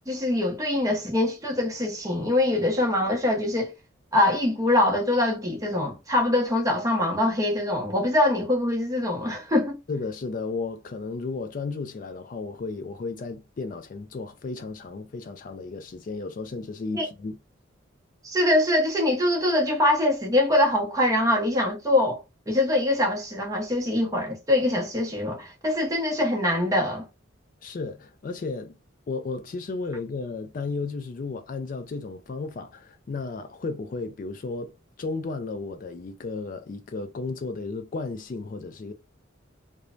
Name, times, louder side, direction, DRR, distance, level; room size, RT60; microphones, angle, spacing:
voice 1, 0.1-3.7 4.1-9.8 16.9-17.1 18.2-22.2 22.5-27.1, left 1 dB, 15° right, 0.7 m, -23 dB
voice 2, 9.9-17.4 27.6-28.8 29.1-38.9, left 3 dB, 40° left, 0.3 m, -34 dB
3.0 x 2.1 x 2.4 m
head